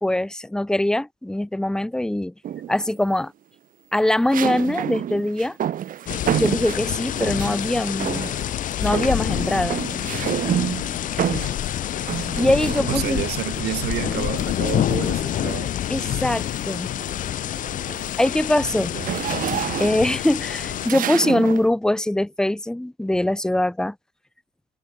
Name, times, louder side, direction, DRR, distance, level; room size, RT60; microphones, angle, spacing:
voice 1, 0.0-2.3 2.7-3.3 3.9-5.6 6.3-8.3 8.8-9.8 12.4-13.2 15.9-16.9 18.2-18.9 19.8-23.9, left 1 dB, 5° left, 0.9 m, -22 dB
sound 1, 2.4-3.0 4.3-7.6 8.0-8.6 8.8-13.3 14.4-15.8 16.3-16.5 16.9-21.7, right 10 dB, 55° right, 1.9 m, -29 dB
sound 2, 6.1-20.9, left 12 dB, 50° left, 0.6 m, -27 dB
voice 2, 12.9-15.7 18.9-19.2, right 15 dB, 75° right, 5.0 m, -29 dB
cardioid pair, 110°, 17 cm